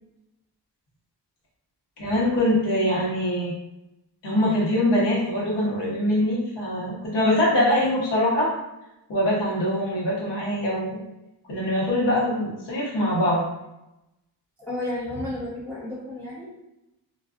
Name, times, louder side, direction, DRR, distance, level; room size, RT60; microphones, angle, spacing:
voice 1, 2.0-3.5 4.2-8.5 9.1-11.0 11.5-13.5, left 1 dB, 70° left, -5 dB, 1.1 m, -23 dB
voice 2, 14.6-16.5, left 1 dB, 5° left, -8 dB, 0.8 m, -32 dB
2.4 x 2.3 x 2.4 m, 0.92 s
cardioid pair, 60°, 44 cm